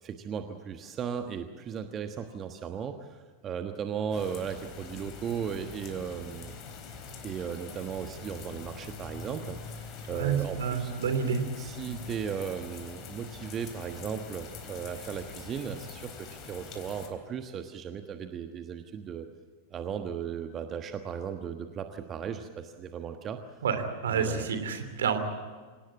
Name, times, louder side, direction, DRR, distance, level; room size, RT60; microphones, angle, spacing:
voice 1, 0.0-6.6 7.2-10.9 11.6-19.3 19.7-23.4 24.1-24.5, right 7 dB, 25° right, 7 dB, 1.3 m, -36 dB
sound 1, 4.1-17.1, left 5 dB, 35° left, 3.9 m, -44 dB
voice 2, 10.1-11.4 11.9-12.0 23.6-25.2, right 6 dB, 65° right, 8 dB, 3.0 m, -29 dB
26.5 x 18.5 x 8.6 m, 1.4 s
figure-of-eight pair, 90°, 0 cm